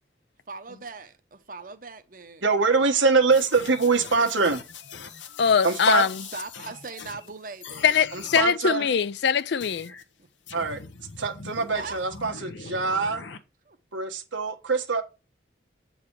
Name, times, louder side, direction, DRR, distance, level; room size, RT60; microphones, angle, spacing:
voice 1, 0.5-3.4 3.8-4.3 6.3-8.0 11.7-12.0 13.7-13.8, right 4 dB, 45° right, 0.8 m, -41 dB
voice 2, 2.4-4.6 5.6-6.0 8.1-8.9 10.5-10.8 11.2-13.2 13.9-15.0, right 4 dB, 90° right, 1.4 m, -23 dB
sound 1, 3.3-7.3 7.6-8.5 9.6-10.0 10.5-13.4, left 5 dB, 85° left, 1.0 m, -42 dB
voice 3, 5.4-6.1 7.8-9.9, left 7 dB, 65° left, 0.4 m, -22 dB
8.6 x 4.0 x 4.7 m
head